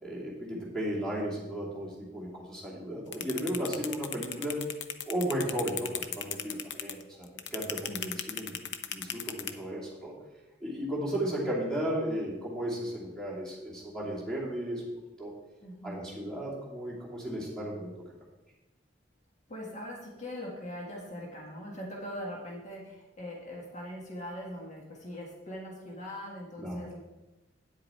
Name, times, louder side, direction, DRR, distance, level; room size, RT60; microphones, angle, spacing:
voice 1, 0.0-4.6 5.1-10.1 10.6-14.8 15.2-15.3 15.8-17.9 26.6-26.8, right 1 dB, 5° left, -5 dB, 2.7 m, -35 dB
sound 1, 3.1-9.5, left 9 dB, 80° left, 0.6 m, -35 dB
voice 2, 7.9-8.2 11.3-11.5 15.6-16.0 19.5-27.0, equal, 40° left, -2 dB, 1.6 m, -41 dB
9.2 x 7.7 x 4.4 m, 1.1 s
head